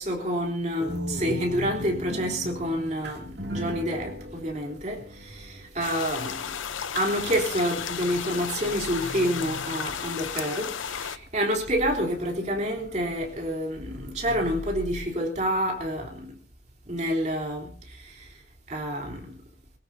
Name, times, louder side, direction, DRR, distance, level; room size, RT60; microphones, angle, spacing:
voice 1, 0.0-6.6 6.9-16.4 16.9-18.4 18.7-19.5, equal, 35° right, 3.4 m, -28 dB
sound 1, 0.8-15.0, left 1 dB, 60° right, 2.4 m, -39 dB
sound 2, 5.8-11.2, left 8 dB, 85° left, 0.8 m, -34 dB
24.0 x 16.5 x 2.7 m
head